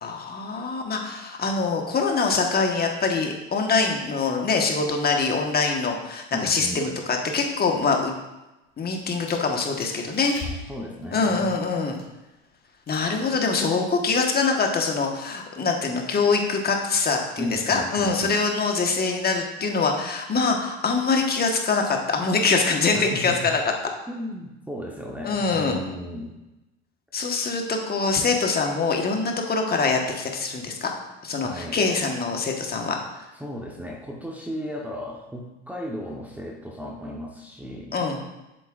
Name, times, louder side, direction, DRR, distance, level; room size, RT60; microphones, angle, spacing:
voice 1, 0.0-8.1 8.8-10.6 11.1-12.0 12.9-23.6 25.2-25.8 27.1-30.9 31.2-33.2 37.9-38.2, left 4 dB, 30° left, 2 dB, 1.3 m, -24 dB
voice 2, 6.3-6.8 10.7-11.5 17.4-18.3 22.9-23.4 24.1-26.4 31.4-31.8 33.3-37.9, equal, 5° right, -2 dB, 1.0 m, -35 dB
sound 1, 8.7-12.3 12.9-13.3 13.5-13.9 14.2-14.5, left 3 dB, 45° left, 2.4 m, -40 dB
7.7 x 7.5 x 2.5 m, 1.0 s
hypercardioid pair, 95°, 34 cm